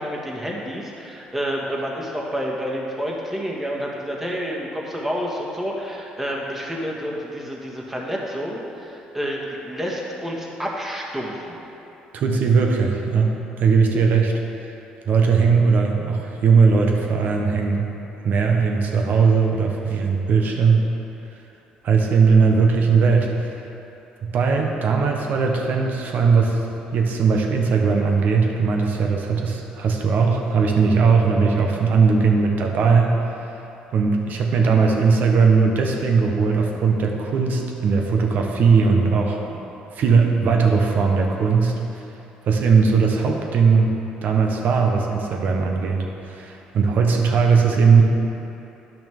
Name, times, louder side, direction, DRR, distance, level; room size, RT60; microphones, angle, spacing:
voice 1, 0.0-11.6, equal, 10° right, -2 dB, 1.7 m, -29 dB
voice 2, 12.1-14.3 15.1-17.9 18.2-20.9 21.8-23.6 24.2-26.6 26.9-33.2 33.9-39.6 39.9-41.7 42.4-43.9 44.2-48.0, right 5 dB, 60° right, 1 dB, 1.1 m, -19 dB
10.5 x 5.9 x 3.6 m, 2.9 s
hypercardioid pair, 60°, 3 cm